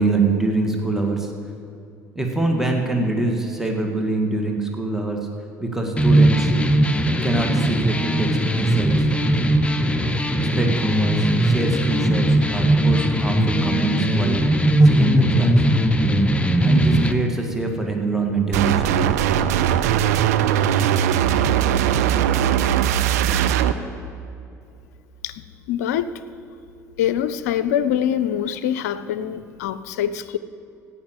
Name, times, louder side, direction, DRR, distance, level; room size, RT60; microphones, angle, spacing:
voice 1, 0.0-1.3 2.2-5.2 5.6-6.5 7.2-9.1 10.6-14.4 14.8-15.6 16.6-19.1, right 3 dB, 5° right, 2 dB, 1.9 m, -24 dB
sound 1, 6.0-17.1, right 1 dB, 15° left, 1.0 m, -19 dB
sound 2, 18.5-23.7, right 10 dB, 70° right, 0.6 m, -19 dB
voice 2, 25.7-26.1 27.0-30.4, left 10 dB, 70° left, 14 dB, 0.5 m, -24 dB
16.5 x 5.8 x 8.0 m, 2.6 s
figure-of-eight pair, 60°, 9 cm